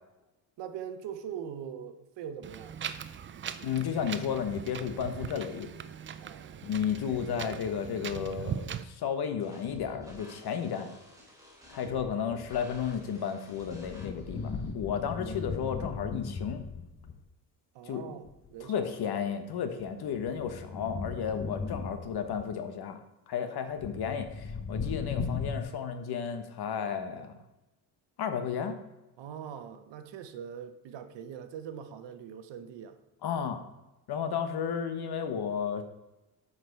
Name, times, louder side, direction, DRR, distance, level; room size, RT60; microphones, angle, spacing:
voice 1, 0.6-2.8 6.2-6.7 11.8-12.0 15.3-15.4 17.7-18.9 29.2-33.0, right 8 dB, 70° right, 9 dB, 1.0 m, -42 dB
Wind, 2.4-8.8, right 8 dB, 30° right, 0.4 m, -40 dB
voice 2, 3.6-5.7 6.6-10.9 11.7-16.6 17.8-18.1 18.7-23.0 23.3-27.4 28.2-28.8 33.2-33.6 34.1-35.8, left 7 dB, 55° left, 8 dB, 1.2 m, -33 dB
sound 1, 9.4-14.7, equal, 10° right, 2.8 m, -51 dB
sound 2, 13.5-17.2 18.3-18.5 19.8-22.4 23.8-25.6, left 4 dB, 30° left, 0.7 m, -37 dB
8.0 x 6.1 x 4.6 m, 0.98 s
cardioid pair, 115°, 44 cm